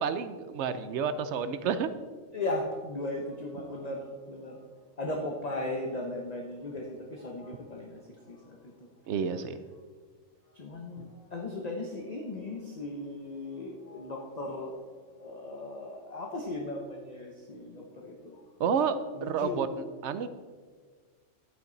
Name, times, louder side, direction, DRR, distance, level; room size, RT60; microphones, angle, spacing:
voice 1, 0.0-1.9 9.1-9.6 18.6-20.3, right 6 dB, 65° right, 12 dB, 0.8 m, -30 dB
voice 2, 2.3-4.6 5.0-8.7 10.5-14.8 15.2-18.4 19.1-19.7, left 2 dB, 35° left, 0 dB, 0.9 m, -37 dB
11.0 x 8.8 x 3.9 m, 1.5 s
omnidirectional pair, 1.4 m